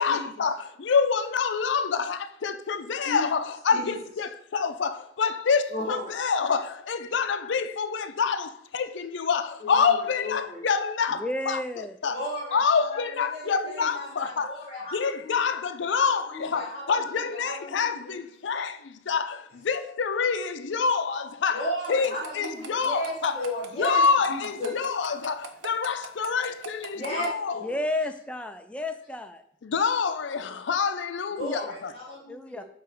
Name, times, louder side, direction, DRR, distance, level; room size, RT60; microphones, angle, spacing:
voice 1, 0.0-12.2 12.5-14.6 14.9-23.4 23.8-27.6 29.6-31.6, left 5 dB, 75° left, 0.5 m, -27 dB
voice 2, 5.7-6.2 9.6-10.6 12.0-15.5 15.9-18.1 21.5-24.7 26.9-27.8 31.3-32.6, left 1 dB, 35° left, 1.3 m, -35 dB
voice 3, 11.2-12.0 27.6-29.4 32.3-32.6, left 1 dB, 5° left, 0.3 m, -31 dB
sound 1, 21.8-27.3, right 5 dB, 80° right, 0.7 m, -40 dB
7.0 x 3.0 x 4.5 m
head